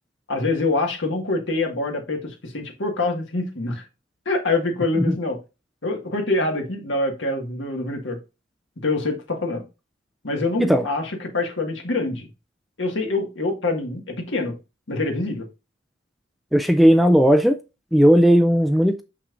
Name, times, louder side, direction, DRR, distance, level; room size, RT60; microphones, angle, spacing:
voice 1, 0.3-3.9 4.3-5.4 5.8-8.2 8.8-9.6 10.2-12.3 12.8-14.5 14.9-15.5, left 2 dB, 75° left, 1.8 m, -25 dB
voice 2, 16.5-17.6 17.9-19.0, equal, ahead, 0.4 m, -16 dB
6.4 x 5.8 x 2.5 m
head